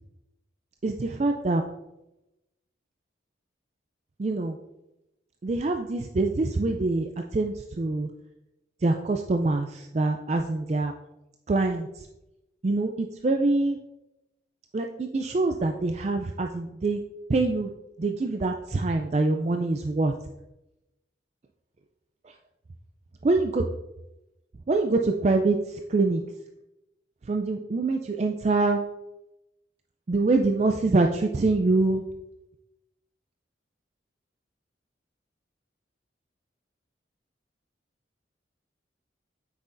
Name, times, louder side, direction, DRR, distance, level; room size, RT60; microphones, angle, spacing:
voice 1, 0.8-1.6 4.2-4.6 5.4-8.1 8.8-10.9 11.5-12.1 12.6-13.8 14.7-17.0 17.3-17.7 18.0-20.1 23.2-23.6 24.7-26.2 27.3-28.8 30.1-32.0, right 3 dB, 35° right, 4 dB, 0.3 m, -25 dB
8.2 x 5.9 x 2.6 m, 0.92 s
head